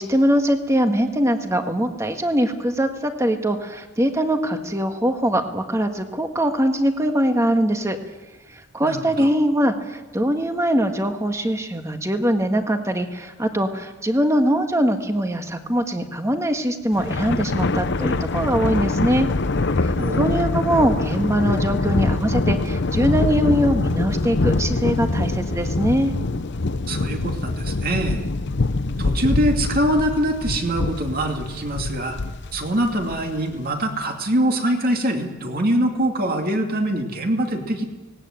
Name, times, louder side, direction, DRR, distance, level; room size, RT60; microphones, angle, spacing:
voice 1, 0.0-8.0 8.5-19.3 19.8-19.9 20.1-26.1, equal, 15° right, 6 dB, 1.6 m, -22 dB
voice 2, 8.8-9.3 20.0-20.2 26.9-28.2 29.0-32.2 32.5-37.8, right 1 dB, 45° right, 3 dB, 2.6 m, -23 dB
Thunder, 16.9-33.5, left 2 dB, 55° left, 0.8 m, -24 dB
18.5 x 17.5 x 9.0 m, 1.2 s
head